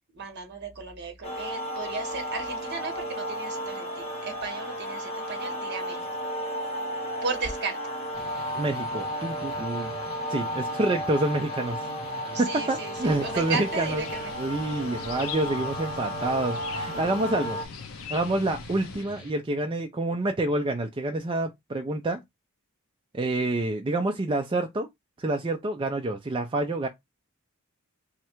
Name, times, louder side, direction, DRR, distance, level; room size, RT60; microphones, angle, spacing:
voice 1, 0.1-6.1 7.2-7.8 12.3-14.3, right 4 dB, 50° right, 1.1 m, -35 dB
sound 1, 1.2-17.6, equal, 30° left, 0.9 m, -33 dB
sound 2, 8.1-19.3, equal, 50° left, 1.7 m, -46 dB
voice 2, 8.5-9.9 10.3-11.9 12.4-14.1 14.4-17.6 18.1-22.2 23.1-24.9 25.2-26.9, right 2 dB, 25° right, 0.4 m, -27 dB
sound 3, 12.9-19.0, left 8 dB, 65° left, 0.5 m, -42 dB
3.2 x 2.4 x 4.4 m
head